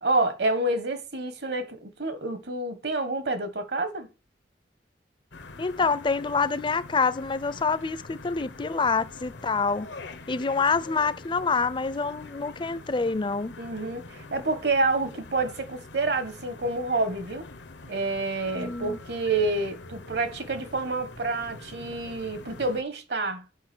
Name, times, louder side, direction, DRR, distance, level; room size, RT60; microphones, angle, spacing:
voice 1, 0.0-4.1 13.6-17.5 17.9-23.4, right 2 dB, 65° right, 1.3 m, -28 dB
sound 1, 5.3-22.8, left 3 dB, 80° left, 0.9 m, -44 dB
voice 2, 5.6-9.9 10.3-13.6 18.6-19.0, left 4 dB, 25° left, 0.5 m, -26 dB
8.2 x 5.1 x 6.1 m
head